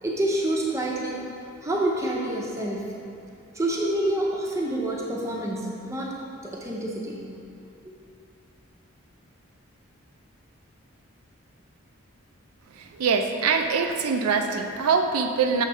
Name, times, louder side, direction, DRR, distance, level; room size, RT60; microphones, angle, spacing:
voice 1, 0.0-1.2 1.6-2.9 3.5-7.2 7.8-7.9, right 1 dB, 15° right, -2 dB, 0.6 m, -27 dB
voice 2, 12.8-15.6, right 5 dB, 90° right, 5 dB, 0.4 m, -24 dB
6.6 x 3.6 x 5.4 m, 2.5 s
head